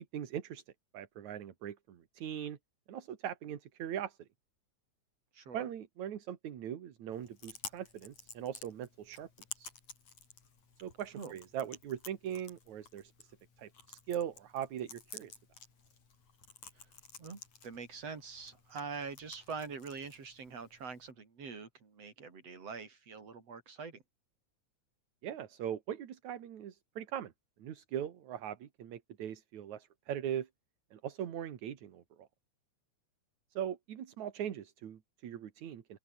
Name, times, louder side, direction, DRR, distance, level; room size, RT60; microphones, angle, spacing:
voice 1, 0.1-0.6 0.9-2.6 2.9-4.3 5.5-9.3 9.6-9.7 10.8-13.3 13.6-15.3 25.2-27.3 27.6-30.5 30.9-32.3 33.5-36.0, right 10 dB, 75° right, 3.2 m, -40 dB
voice 2, 5.3-5.7 11.2-11.3 17.2-24.0, right 5 dB, 55° right, 5.2 m, -44 dB
Chewing mastication, 7.1-21.1, left 5 dB, 70° left, 5.9 m, -53 dB
open air
omnidirectional pair, 3.4 m